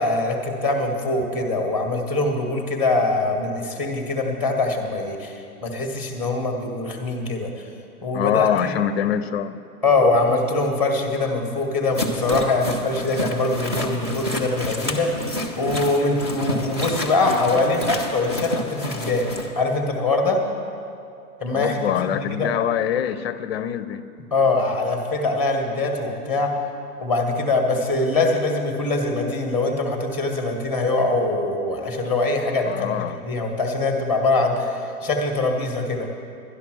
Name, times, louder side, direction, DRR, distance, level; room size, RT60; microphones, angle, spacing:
voice 1, 0.0-5.3 5.6-7.5 8.0-8.8 9.8-15.2 15.6-19.3 19.5-20.5 21.4-22.5 24.3-26.6 27.0-36.1, left 2 dB, 5° right, 3 dB, 0.8 m, -23 dB
voice 2, 8.1-9.6 21.5-24.0 32.6-33.2, left 10 dB, 45° left, 13 dB, 0.5 m, -24 dB
sound 1, 11.9-19.5, left 1 dB, 20° right, 0.4 m, -29 dB
11.5 x 11.5 x 6.1 m, 2.6 s
hypercardioid pair, 160°, 47 cm